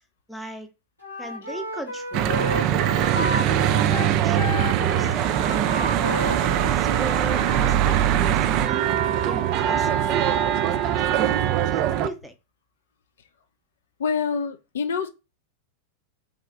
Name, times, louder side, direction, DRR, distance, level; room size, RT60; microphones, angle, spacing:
voice 1, 0.3-0.7 1.2-4.4 4.8-8.9 9.3-12.3, right 1 dB, ahead, 0.6 m, -39 dB
Wind instrument woodwind instrument, 1.0-7.7, left 2 dB, 90° left, 1.4 m, -32 dB
Church bell / Traffic noise roadway noise, 2.1-12.1, right 11 dB, 40° right, 0.3 m, -22 dB
voice 2, 14.0-15.1, left 5 dB, 65° left, 0.4 m, -26 dB
3.3 x 2.3 x 3.8 m
figure-of-eight pair, 90°, 0 cm